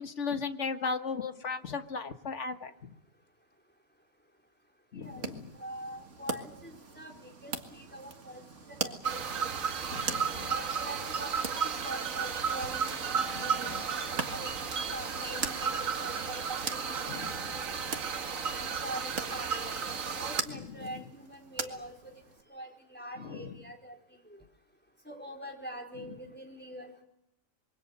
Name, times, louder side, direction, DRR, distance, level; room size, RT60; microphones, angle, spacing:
voice 1, 0.0-2.9 4.9-5.5 9.9-10.5 13.3-13.8 17.1-17.3 23.3-23.4, left 5 dB, 60° left, 8 dB, 1.7 m, -36 dB
voice 2, 4.9-5.3 5.5-8.4 8.7-9.5 10.5-13.7 14.3-16.4 16.8-17.2 17.5-17.9 18.5-22.1 22.5-24.4 25.0-27.0, right 1 dB, 5° left, 1 dB, 4.5 m, -44 dB
sound 1, 5.0-22.4, right 4 dB, 65° right, 2.2 m, -42 dB
sound 2, 9.0-20.4, right 6 dB, 80° right, 1.7 m, -33 dB
26.0 x 23.5 x 6.7 m, 0.78 s
omnidirectional pair, 1.4 m